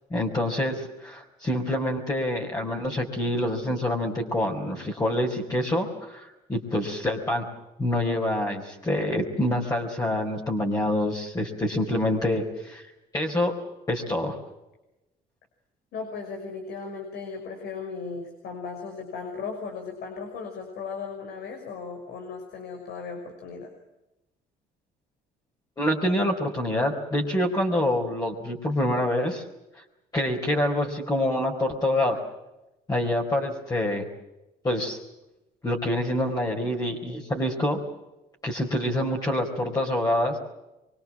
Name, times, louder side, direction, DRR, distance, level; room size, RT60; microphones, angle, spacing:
voice 1, 0.1-7.4 7.8-12.9 13.1-13.5 13.9-14.4 25.8-29.4 30.1-32.2 32.9-34.0 34.6-35.0 35.6-37.8 38.4-40.4, left 1 dB, 20° left, -2 dB, 4.5 m, -26 dB
voice 2, 15.9-23.7, left 5 dB, 75° left, 4 dB, 5.9 m, -36 dB
25.0 x 24.0 x 7.6 m, 0.95 s
cardioid pair, 110°, 17 cm